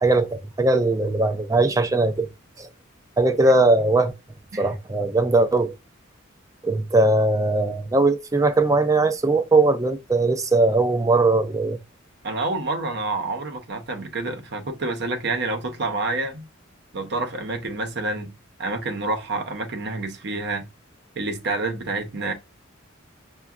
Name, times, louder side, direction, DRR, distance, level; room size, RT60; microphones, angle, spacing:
voice 1, 0.0-2.3 2.6-2.7 3.2-4.1 4.6-5.7 6.6-11.8, right 2 dB, 15° right, 0.4 m, -20 dB
voice 2, 12.2-16.5 16.9-18.3 18.6-20.7 21.1-22.3, right 2 dB, 55° right, 0.7 m, -28 dB
6.7 x 2.2 x 2.4 m
head